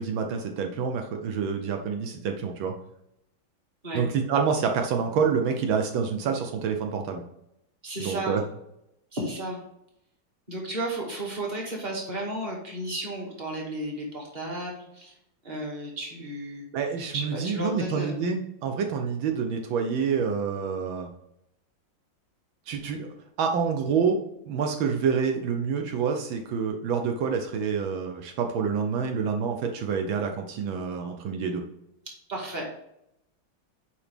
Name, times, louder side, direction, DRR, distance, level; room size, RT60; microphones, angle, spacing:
voice 1, 0.0-2.7 3.9-7.2 8.0-8.4 16.7-21.1 22.7-23.1 23.4-24.2 24.4-31.6, right 6 dB, 80° right, 4 dB, 1.5 m, -27 dB
voice 2, 7.8-8.4 9.1-9.6 10.5-15.1 15.4-16.7 17.1-18.1 32.3-32.7, right 1 dB, 25° right, -2 dB, 1.7 m, -33 dB
6.9 x 5.0 x 3.4 m, 0.80 s
omnidirectional pair, 2.2 m